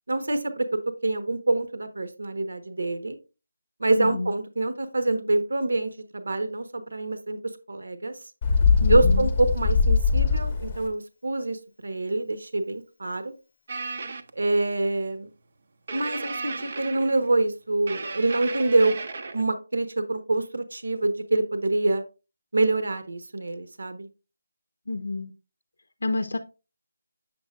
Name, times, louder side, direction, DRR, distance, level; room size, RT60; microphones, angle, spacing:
voice 1, 0.1-0.7 1.0-3.2 3.8-7.4 7.7-8.1 8.9-13.3 14.3-15.3 15.9-19.0 19.3-22.0 22.5-24.1, right 2 dB, 75° right, 8 dB, 1.1 m, -26 dB
voice 2, 4.0-4.3 8.8-9.3 24.9-25.3 26.0-26.4, left 3 dB, 75° left, 8 dB, 0.6 m, -29 dB
Bird, 8.4-10.9, left 5 dB, 20° left, 0.8 m, -21 dB
sound 1, 13.7-14.3 15.9-17.4 17.9-19.4, right 4 dB, 40° right, 0.6 m, -35 dB
7.6 x 7.1 x 2.4 m, 0.31 s
figure-of-eight pair, 175°, 0 cm